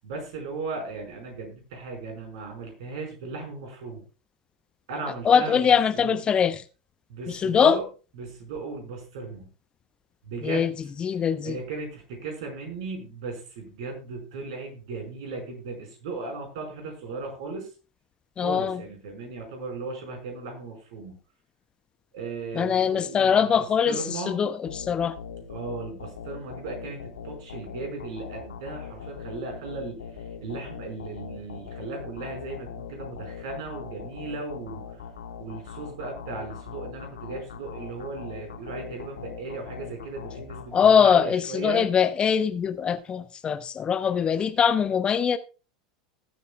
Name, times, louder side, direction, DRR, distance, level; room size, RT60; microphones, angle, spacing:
voice 1, 0.0-4.0 4.9-5.7 6.0-6.1 7.1-7.8 8.2-9.5 10.2-10.8 11.4-17.7 18.4-21.2 22.1-24.4 25.5-34.8 35.4-41.9, right 3 dB, 60° right, 5.1 m, -36 dB
voice 2, 5.2-6.6 7.3-7.8 10.4-10.7 11.0-11.6 18.4-18.8 22.5-25.1 40.7-45.4, left 7 dB, 25° left, 0.8 m, -22 dB
sound 1, 24.7-41.3, left 6 dB, 70° left, 1.6 m, -41 dB
20.0 x 8.3 x 2.3 m
figure-of-eight pair, 80°, 4 cm